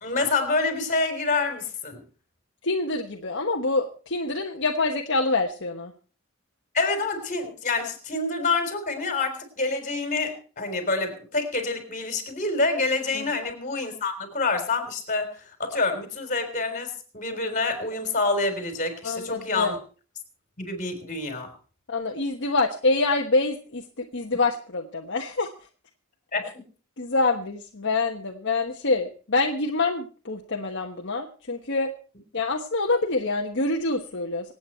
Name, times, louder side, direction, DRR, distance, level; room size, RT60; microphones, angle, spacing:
voice 1, 0.0-2.0 6.7-19.8 20.6-21.5 26.3-26.4, left 3 dB, 35° left, 6 dB, 3.8 m, -27 dB
voice 2, 2.6-5.9 13.1-13.4 19.0-19.7 21.9-25.5 27.0-31.9 32.3-34.5, left 3 dB, 55° left, 2 dB, 1.3 m, -26 dB
25.5 x 8.9 x 4.5 m, 0.39 s
head